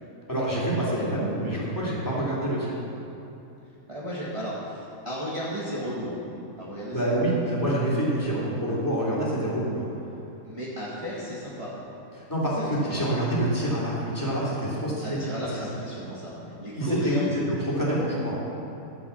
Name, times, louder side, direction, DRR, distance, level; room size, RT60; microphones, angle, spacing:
voice 1, 0.3-2.7 6.9-9.9 12.1-15.2 15.6-15.7 16.7-18.4, right 1 dB, 15° left, -6 dB, 3.3 m, -26 dB
voice 2, 3.9-6.2 6.6-7.4 10.4-11.7 12.6-13.0 15.0-17.3, equal, 20° right, -8 dB, 1.8 m, -34 dB
12.5 x 8.3 x 7.2 m, 2.9 s
omnidirectional pair, 1.5 m